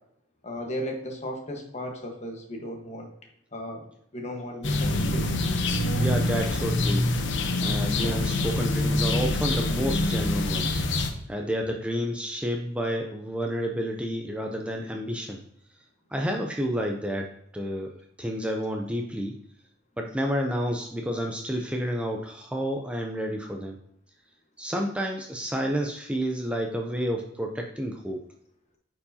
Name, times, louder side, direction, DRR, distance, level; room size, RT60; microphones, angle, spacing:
voice 1, 0.4-3.1 3.5-3.8 4.1-5.3, equal, 40° left, 2 dB, 1.2 m, -35 dB
sound 1, 4.6-11.1, left 2 dB, 75° left, 0.8 m, -25 dB
voice 2, 6.0-7.1 7.6-10.8 11.3-15.4 16.1-17.9 18.2-19.3 20.0-23.8 24.6-28.2, equal, 5° right, 2 dB, 0.5 m, -30 dB
8.6 x 4.8 x 2.7 m, 0.72 s
head